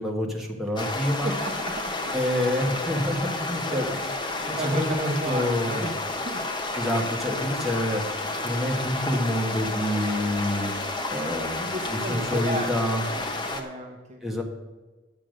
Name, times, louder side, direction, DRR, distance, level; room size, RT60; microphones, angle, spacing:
voice 1, 0.0-1.3 2.1-3.9 4.5-5.9 6.7-13.0 14.2-14.4, left 1 dB, ahead, -1 dB, 1.5 m, -27 dB
sound 1, 0.8-13.6, left 2 dB, 25° left, 1.0 m, -31 dB
voice 2, 1.2-2.2 3.7-4.2 4.5-5.9 6.2-6.4 11.7-12.7 13.2-13.3 13.5-14.2, right 2 dB, 35° right, 1 dB, 1.0 m, -33 dB
10.5 x 7.3 x 6.4 m, 1.3 s
head